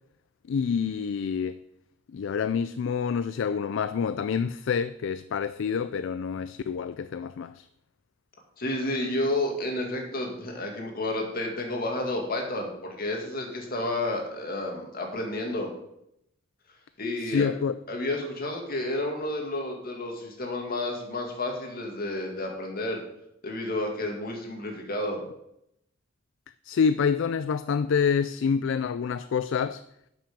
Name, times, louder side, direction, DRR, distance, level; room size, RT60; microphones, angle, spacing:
voice 1, 0.5-1.6 2.1-7.7 17.2-17.8 26.6-29.8, left 6 dB, 65° left, 0.3 m, -27 dB
voice 2, 8.6-15.7 17.0-17.5 17.9-23.0 23.4-25.2, left 1 dB, 50° left, 2.2 m, -31 dB
11.5 x 6.2 x 5.2 m
head